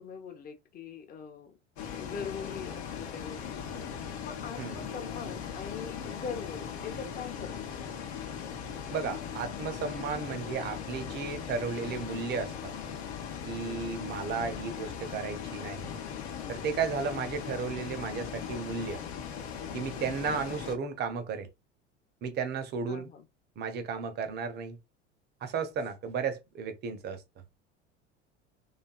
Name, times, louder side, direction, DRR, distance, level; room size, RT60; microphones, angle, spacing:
voice 1, 0.0-1.5 1.9-8.0 22.9-23.3, left 6 dB, 25° left, 0.7 m, -42 dB
Bus, 1.8-20.8, left 7 dB, 65° left, 0.7 m, -39 dB
voice 2, 4.6-4.9 8.9-12.7 13.4-15.9 16.5-19.0 19.7-21.5 22.2-23.1 23.6-24.8 25.4-27.2, right 5 dB, 30° right, 0.6 m, -34 dB
2.5 x 2.4 x 2.2 m
figure-of-eight pair, 75°, 36 cm